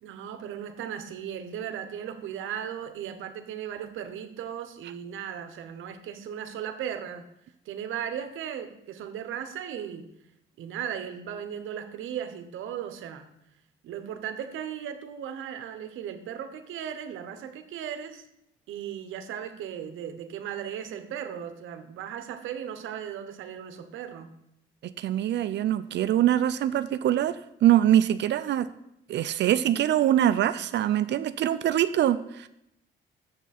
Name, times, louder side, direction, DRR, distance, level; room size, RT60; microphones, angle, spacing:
voice 1, 0.0-7.3 7.7-10.1 10.6-13.3 13.8-18.2 18.7-24.3, right 9 dB, 80° right, 9 dB, 0.8 m, -36 dB
voice 2, 24.8-28.7 29.1-32.5, right 11 dB, 60° right, 12 dB, 0.4 m, -24 dB
7.0 x 6.1 x 4.2 m, 0.79 s
cardioid pair, 90°, 20 cm